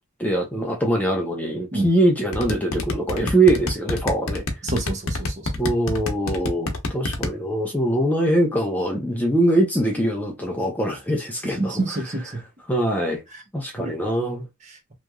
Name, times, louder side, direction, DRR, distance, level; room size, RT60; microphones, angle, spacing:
voice 1, 0.2-4.4 5.6-11.8 12.7-13.2 13.5-14.5, right 1 dB, 5° left, 0.5 m, -22 dB
sound 1, 2.3-7.3, left 2 dB, 90° left, 0.8 m, -25 dB
voice 2, 4.6-5.5 11.4-12.4 13.3-13.4 13.8-14.0 14.6-14.8, right 2 dB, 35° right, 0.8 m, -28 dB
3.0 x 2.4 x 2.2 m
head